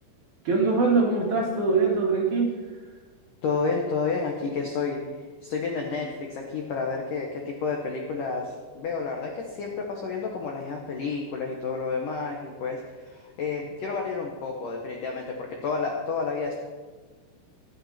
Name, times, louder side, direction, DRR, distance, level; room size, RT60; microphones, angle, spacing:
voice 1, 0.4-2.5, right 4 dB, 50° right, -2 dB, 2.7 m, -22 dB
voice 2, 3.4-16.6, left 4 dB, 80° left, 1 dB, 1.9 m, -30 dB
25.0 x 8.9 x 4.4 m, 1.4 s
omnidirectional pair, 5.8 m